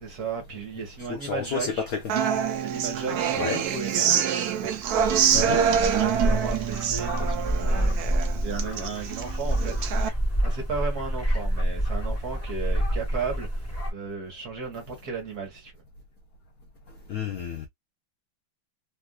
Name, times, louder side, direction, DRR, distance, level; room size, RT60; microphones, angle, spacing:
voice 1, 0.0-1.9 2.6-4.2 4.6-4.8 5.3-8.0 8.4-9.9 10.4-13.5 13.9-15.7, right 5 dB, 55° right, 1.7 m, -35 dB
voice 2, 1.1-2.2 3.4-4.0 5.3-5.6 17.1-17.7, left 6 dB, 75° left, 0.8 m, -31 dB
Human voice / Acoustic guitar, 2.1-10.1, right 8 dB, 75° right, 0.8 m, -26 dB
sound 1, 4.8-13.9, equal, 10° left, 1.0 m, -28 dB
3.5 x 2.5 x 2.2 m
omnidirectional pair, 2.2 m